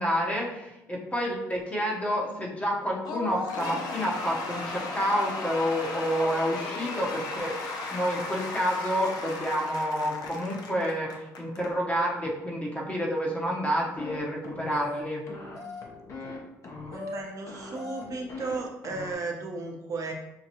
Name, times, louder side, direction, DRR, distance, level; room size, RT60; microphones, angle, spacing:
voice 1, 0.0-15.2, equal, 20° left, -2 dB, 1.0 m, -29 dB
Cheering / Applause / Crowd, 3.0-11.7, left 3 dB, 65° left, 0.7 m, -35 dB
sound 1, 13.9-14.2 14.4-15.0 15.3-16.4 16.6-17.2 17.5-18.6 18.8-19.1, left 3 dB, 45° left, 1.0 m, -39 dB
voice 2, 16.9-20.1, right 3 dB, 50° right, 1 dB, 0.9 m, -35 dB
5.8 x 2.3 x 2.9 m, 0.91 s
supercardioid pair, 75°, 7 cm